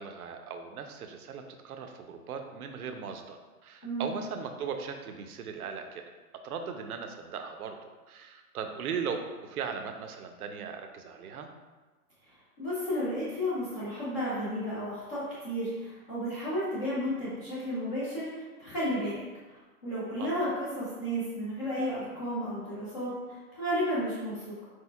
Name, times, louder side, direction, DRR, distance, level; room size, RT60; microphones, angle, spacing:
voice 1, 0.0-6.0 6.4-7.8 8.1-11.5 20.2-20.3, right 6 dB, 75° right, 5 dB, 0.6 m, -38 dB
voice 2, 3.8-4.1 12.3-19.2 19.5-24.6, equal, 20° left, -11 dB, 0.7 m, -33 dB
4.5 x 4.4 x 2.3 m, 1.3 s
hypercardioid pair, 170°, 45 cm